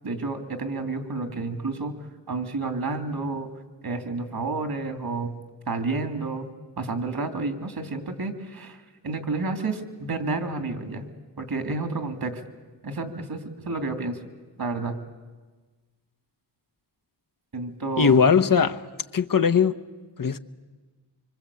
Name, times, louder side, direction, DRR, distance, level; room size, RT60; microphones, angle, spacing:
voice 1, 0.0-3.5 3.8-5.3 5.7-6.5 6.8-8.8 9.0-11.0 11.4-12.4 12.8-14.2 14.6-15.0 17.5-18.2, right 3 dB, 55° right, 7 dB, 3.3 m, -30 dB
voice 2, 18.0-18.8 19.1-19.7 20.2-20.4, left 6 dB, 50° left, 9 dB, 1.0 m, -19 dB
25.0 x 24.5 x 8.6 m, 1.3 s
cardioid pair, 60°, 43 cm